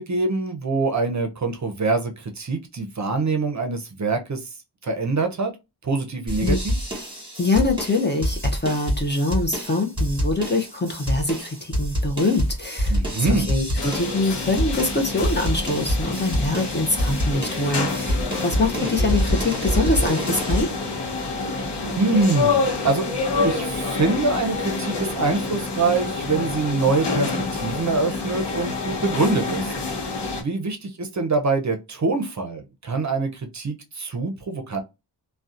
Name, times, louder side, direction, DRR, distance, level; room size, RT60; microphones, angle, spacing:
voice 1, 0.0-4.5 4.8-5.5 5.8-6.8 12.9-13.5 18.4-18.9 21.9-23.1 23.4-30.0 30.4-34.8, right 3 dB, 45° right, 0.5 m, -24 dB
sound 1, 6.3-20.6, equal, 10° right, 1.2 m, -26 dB
voice 2, 7.4-20.7, left 2 dB, 25° left, 0.5 m, -24 dB
sound 2, 13.7-30.4, left 3 dB, 80° left, 0.7 m, -27 dB
2.6 x 2.1 x 2.4 m
wide cardioid pair, 90°, 41 cm